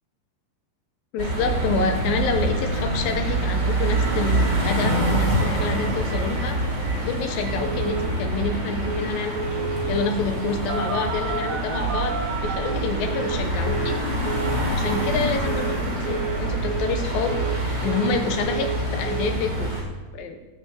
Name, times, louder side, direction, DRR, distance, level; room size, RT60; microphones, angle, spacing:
voice 1, 1.1-14.0 14.7-17.4 17.8-19.7 20.1-20.4, left 4 dB, 70° left, 5 dB, 2.3 m, -28 dB
sound 1, 1.2-19.8, right 1 dB, 35° right, 3.4 m, -26 dB
Telephone, 3.9-4.0 4.3-4.4 4.7-4.8 5.0-5.5 5.7-5.8 6.1-6.4 6.8-6.9 7.4-8.1 8.9-9.1 9.4-10.1 10.7-13.4 13.7-14.0 14.3-14.6 14.9-15.2 15.5-15.8 16.1-16.4 16.7-17.0 17.3-18.2 18.5-18.8 19.1-19.3, right 6 dB, 75° right, 4.7 m, -31 dB
15.0 x 5.7 x 7.5 m, 1.2 s
omnidirectional pair, 5.0 m